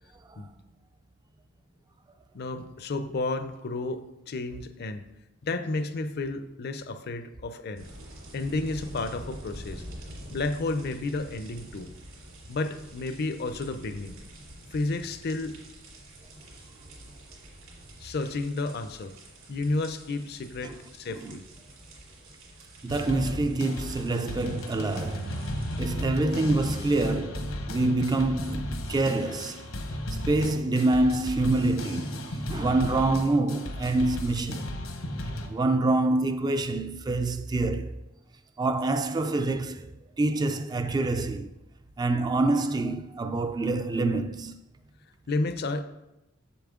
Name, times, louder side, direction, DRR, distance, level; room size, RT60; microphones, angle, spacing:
voice 1, 2.3-5.1 5.4-7.8 8.3-9.8 10.3-11.9 12.5-14.2 14.7-15.6 18.0-19.2 19.5-21.4 45.3-45.8, left 2 dB, 50° left, 0.5 m, -31 dB
sound 1, 7.7-25.8, right 1 dB, 75° right, 3.0 m, -47 dB
voice 2, 22.8-25.5 25.8-29.7 30.3-34.7 35.5-38.0 38.6-39.9 40.2-41.5 42.0-44.6, right 2 dB, 20° right, 0.3 m, -26 dB
sound 2, 22.9-35.5, left 1 dB, 75° left, 1.0 m, -35 dB
7.4 x 7.0 x 3.7 m
head